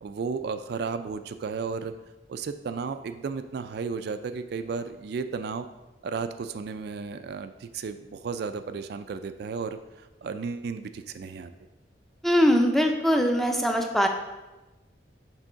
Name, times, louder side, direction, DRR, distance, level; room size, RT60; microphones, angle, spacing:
voice 1, 0.0-1.9 2.3-5.7 6.0-11.5, right 5 dB, 60° right, 10 dB, 0.3 m, -34 dB
voice 2, 12.2-14.1, equal, ahead, 4 dB, 0.5 m, -22 dB
6.1 x 3.7 x 5.5 m, 1.1 s
head